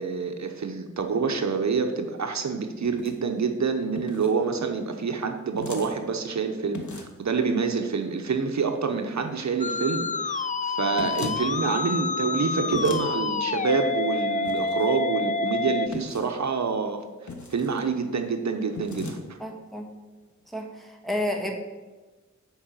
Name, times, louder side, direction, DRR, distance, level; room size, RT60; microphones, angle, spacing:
voice 1, 0.0-17.0 17.5-19.2, right 5 dB, 70° right, 6 dB, 1.0 m, -27 dB
sound 1, 2.8-3.2 4.0-4.3 5.6-5.9 6.7-7.2 11.0-11.4 12.7-13.1 14.5-14.9 15.9-16.3 17.3-17.8 18.7-19.2, left 4 dB, 80° left, 1.3 m, -37 dB
Musical instrument, 9.6-15.9, left 3 dB, 25° left, 0.4 m, -28 dB
voice 2, 19.4-19.9 20.5-21.5, left 1 dB, ahead, 1 dB, 1.5 m, -31 dB
10.5 x 4.8 x 7.4 m, 1.2 s
wide cardioid pair, 105°, 29 cm